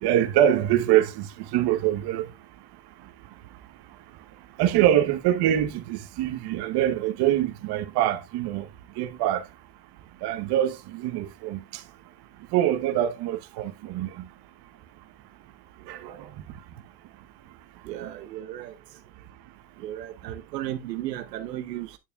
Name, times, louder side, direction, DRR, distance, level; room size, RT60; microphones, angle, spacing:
voice 1, 0.0-2.3 4.6-8.7 9.0-9.4 10.2-11.8 12.5-14.2 15.9-16.3, right 11 dB, 55° right, 1.1 m, -24 dB
voice 2, 17.8-18.7 19.8-22.0, right 13 dB, 90° right, 0.9 m, -34 dB
9.4 x 6.8 x 2.3 m
hypercardioid pair, 90°, 48 cm